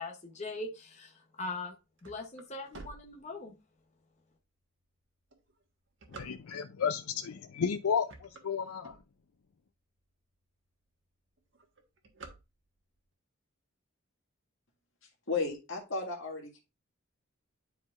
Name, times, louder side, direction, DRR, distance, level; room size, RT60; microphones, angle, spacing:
voice 1, 0.0-1.7 2.0-3.5, left 3 dB, 30° left, 0.9 m, -41 dB
sound 1, 1.7-3.8 4.4-4.5 5.1-6.9 7.5-7.7 8.0-9.5 10.0-10.1 10.4-10.5 10.8-11.1 11.4-13.0, right 3 dB, 60° right, 1.4 m, -51 dB
voice 2, 6.1-9.0, left 6 dB, 90° left, 0.5 m, -33 dB
voice 3, 15.3-16.6, left 4 dB, 65° left, 1.9 m, -34 dB
10.5 x 4.6 x 2.5 m
head